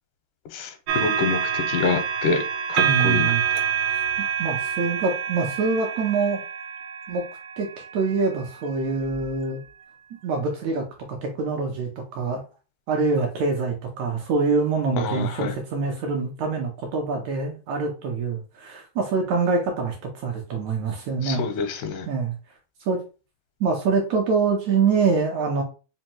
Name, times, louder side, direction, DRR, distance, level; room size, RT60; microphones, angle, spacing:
voice 1, 0.5-2.4 2.7-3.3 15.0-15.5 21.2-22.1, left 5 dB, 85° left, 7 dB, 2.2 m, -26 dB
sound 1, 0.9-8.3 9.1-9.3, right 8 dB, 90° right, 2.3 m, -27 dB
voice 2, 2.8-3.4 4.4-6.4 7.1-7.2 7.6-7.7 7.9-9.6 10.2-12.4 12.9-21.4 22.1-22.3 22.8-23.0 23.6-25.6, right 4 dB, 75° right, 1 dB, 1.8 m, -25 dB
5.3 x 2.3 x 2.9 m, 0.33 s
omnidirectional pair, 3.8 m